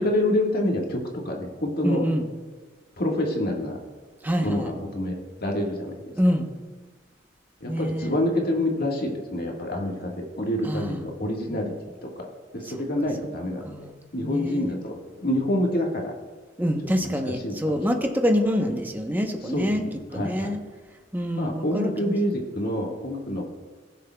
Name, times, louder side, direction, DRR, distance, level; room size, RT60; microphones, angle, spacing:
voice 1, 0.0-2.1 3.0-3.8 4.4-5.9 7.6-11.7 12.2-14.9 15.2-16.1 17.0-17.1 17.4-17.8 19.5-20.5 21.3-23.4, left 1 dB, 55° left, 0 dB, 1.7 m, -27 dB
voice 2, 1.8-2.3 4.2-4.7 6.2-6.5 7.7-8.1 10.6-11.0 11.5-11.6 13.6-13.9 14.2-14.8 16.6-19.8 20.1-20.6 21.1-22.1, equal, 10° right, 4 dB, 0.9 m, -26 dB
20.0 x 6.7 x 2.3 m, 1.4 s
head